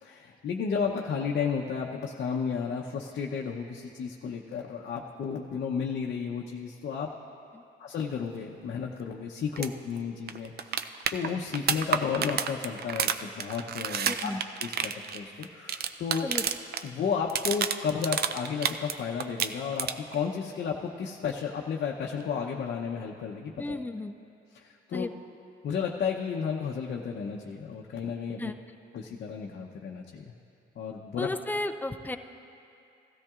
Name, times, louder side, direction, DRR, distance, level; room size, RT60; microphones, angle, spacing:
voice 1, 0.0-7.1 7.8-14.3 14.6-16.3 16.8-23.8 24.5-25.1 25.6-28.5 28.9-30.3 30.8-31.3, left 6 dB, 60° left, -1 dB, 0.8 m, -33 dB
sound 1, 9.6-9.7 10.0-10.1 10.3-16.8 17.1-18.9 19.2-20.2 22.2-22.3, right 8 dB, 55° right, 0.5 m, -30 dB
voice 2, 14.1-14.4 16.2-16.5 23.6-24.1 24.9-25.1 28.4-28.6 31.2-32.2, left 2 dB, 10° left, 6 dB, 0.5 m, -33 dB
16.5 x 13.5 x 2.4 m, 2.6 s
cardioid pair, 90°, 20 cm